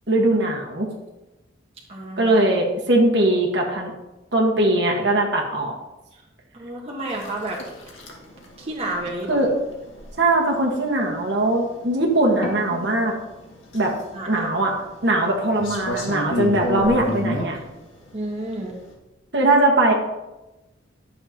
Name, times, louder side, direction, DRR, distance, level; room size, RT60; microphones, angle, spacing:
voice 1, 0.1-0.9 2.2-3.9 4.3-5.7 9.3-9.5 10.2-13.1 13.7-13.9 14.3-14.7 15.0-17.6 19.3-19.9, right 1 dB, 60° right, 0 dB, 1.4 m, -20 dB
voice 2, 1.9-2.4 6.1-6.2 6.5-7.6 8.6-9.4 14.1-14.5 18.1-18.8, right 1 dB, 30° right, -2 dB, 1.3 m, -30 dB
sound 1, 7.1-18.9, equal, 85° left, 1.8 m, -33 dB
11.5 x 6.8 x 2.9 m, 1.0 s
head